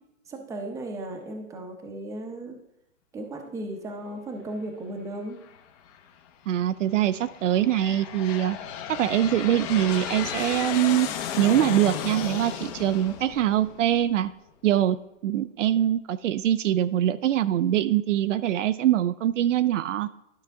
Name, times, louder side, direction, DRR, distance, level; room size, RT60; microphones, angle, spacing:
voice 1, 0.3-2.6 3.1-5.4, right 1 dB, 10° right, 3 dB, 0.7 m, -36 dB
Aircraft, 5.4-6.0 6.7-14.3, left 8 dB, 30° left, 0.8 m, -34 dB
voice 2, 6.5-8.6 8.9-11.1 11.4-14.3 14.6-15.0 15.2-20.1, right 12 dB, 65° right, 13 dB, 0.5 m, -23 dB
12.0 x 5.6 x 3.5 m, 0.84 s
hypercardioid pair, 140°, 40 cm